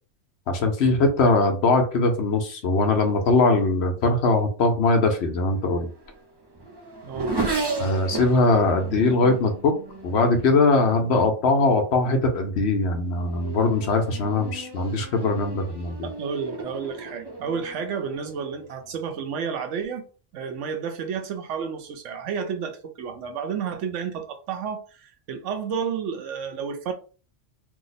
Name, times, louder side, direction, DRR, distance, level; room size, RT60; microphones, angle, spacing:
voice 1, 0.5-5.9 7.8-9.8 10.0-16.1, left 3 dB, 65° left, 0.9 m, -21 dB
Race car auto racing / Accelerating revving vroom, 5.5-11.4 12.2-12.5 13.0-18.9, right 3 dB, 35° right, 0.4 m, -35 dB
voice 2, 16.0-20.1 20.3-26.9, right 6 dB, 80° right, 1.0 m, -31 dB
2.8 x 2.0 x 3.9 m
omnidirectional pair, 1.2 m